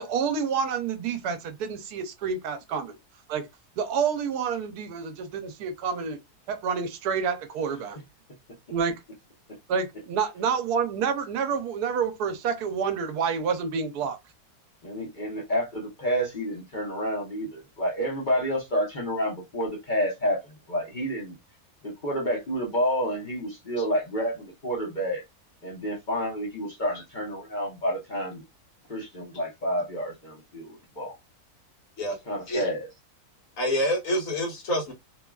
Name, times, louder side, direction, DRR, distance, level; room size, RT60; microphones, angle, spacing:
voice 1, 0.0-2.9 3.3-3.5 3.8-6.2 6.5-8.0 8.7-9.0 9.7-14.2, right 6 dB, 80° right, 1.1 m, -28 dB
voice 2, 14.8-21.4 21.8-25.2 25.6-28.4 28.9-31.2 32.3-32.9, equal, 40° left, 0.8 m, -29 dB
voice 3, 33.6-34.9, equal, 60° left, 1.4 m, -27 dB
3.1 x 2.3 x 2.2 m
omnidirectional pair, 1.6 m